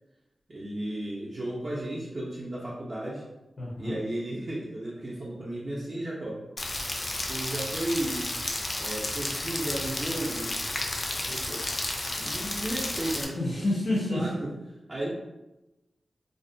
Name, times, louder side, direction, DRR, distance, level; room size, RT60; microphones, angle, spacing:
voice 1, 0.5-3.2 3.8-6.4 7.3-8.3 8.8-10.5 11.1-11.7 12.2-13.4 14.1-14.5 14.9-15.1, right 1 dB, 45° right, -6 dB, 0.5 m, -34 dB
voice 2, 3.6-3.9 13.4-14.2, left 2 dB, 85° left, -6 dB, 0.6 m, -28 dB
Rain, 6.6-13.2, left 1 dB, 35° left, 0.4 m, -32 dB
2.5 x 2.1 x 2.5 m, 0.99 s
wide cardioid pair, 85°, 0 cm